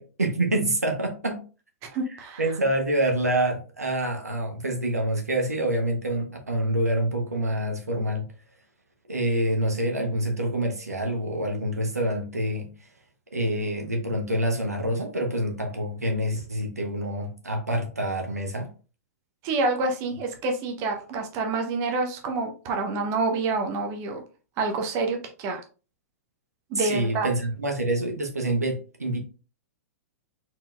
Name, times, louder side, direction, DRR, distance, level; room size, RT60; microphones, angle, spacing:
voice 1, 0.0-1.4 2.4-8.2 9.1-12.7 13.3-18.7 26.7-29.2, right 1 dB, 85° right, 3 dB, 1.1 m, -26 dB
voice 2, 1.9-2.4 19.4-24.2 24.6-25.6 26.7-27.3, right 3 dB, 35° right, 3 dB, 1.0 m, -27 dB
4.3 x 4.1 x 2.5 m, 0.35 s
figure-of-eight pair, 105°, 8 cm